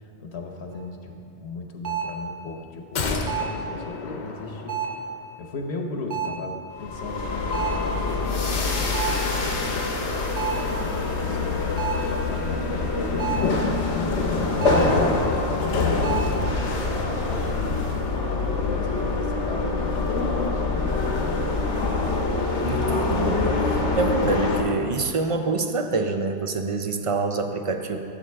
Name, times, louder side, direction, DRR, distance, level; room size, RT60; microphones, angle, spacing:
voice 1, 0.2-4.8 5.4-13.4 13.9-17.9 18.5-20.9, left 3 dB, 65° left, 3 dB, 1.1 m, -37 dB
sound 1, 0.7-0.8 1.8-2.2 3.3-3.6 4.7-5.1 6.1-6.5 7.5-7.9 8.9-9.3 10.4-10.7 11.8-12.1 13.2-13.6 14.6-15.0 16.0-16.4, right 8 dB, 75° right, 1.3 m, -29 dB
sound 2, 2.9-5.3 5.6-5.7, left 3 dB, 50° left, 0.7 m, -32 dB
sound 3, 6.8-24.6, left 3 dB, 85° left, 1.3 m, -25 dB
voice 2, 22.6-28.0, right 3 dB, 45° right, 6 dB, 0.4 m, -26 dB
12.5 x 7.5 x 3.4 m, 2.5 s
omnidirectional pair, 1.2 m